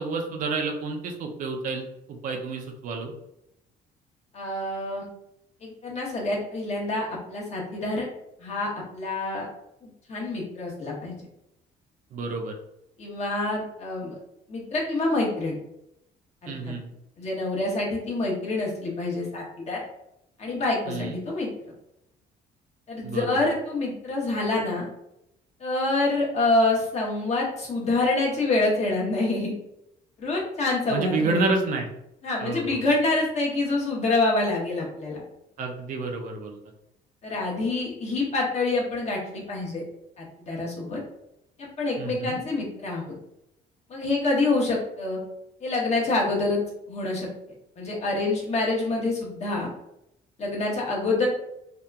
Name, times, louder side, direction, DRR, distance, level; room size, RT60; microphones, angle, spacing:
voice 1, 0.0-3.1 12.1-12.5 16.5-16.9 20.9-21.2 23.0-23.4 30.9-31.9 32.4-32.8 35.6-36.6 42.0-42.4, right 3 dB, 50° right, 2 dB, 0.4 m, -29 dB
voice 2, 4.3-5.0 5.6-8.0 8.4-9.5 10.1-11.3 13.0-14.2 14.5-15.6 16.4-16.7 17.2-19.8 20.4-21.5 22.9-24.9 25.6-29.5 30.2-31.5 32.2-35.2 37.2-39.8 40.2-41.0 41.6-43.0 43.9-45.2 45.6-46.6 46.9-47.3 47.8-49.7 50.4-51.3, left 2 dB, 40° left, -2 dB, 0.9 m, -26 dB
2.8 x 2.3 x 2.2 m, 0.82 s
cardioid pair, 110°, 17 cm